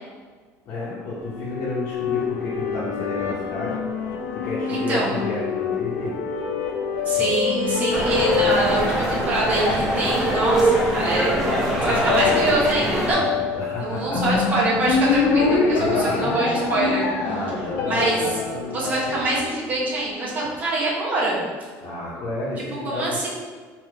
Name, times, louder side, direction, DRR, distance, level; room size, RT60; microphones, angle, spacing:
voice 1, 0.7-3.8 4.3-6.2 11.6-12.2 13.5-14.6 15.8-16.3 17.2-18.2 21.8-23.3, left 2 dB, 45° left, -9 dB, 0.9 m, -31 dB
sound 1, 1.2-19.8, left 5 dB, 85° left, 0.6 m, -26 dB
voice 2, 4.7-5.1 7.0-11.4 11.8-13.3 13.8-17.1 17.9-18.2 18.6-21.5 22.8-23.3, right 2 dB, 25° right, -5 dB, 0.9 m, -24 dB
sound 2, 7.9-13.1, right 1 dB, ahead, 0.7 m, -23 dB
3.4 x 2.8 x 4.3 m, 1.5 s
cardioid pair, 170°, 6 cm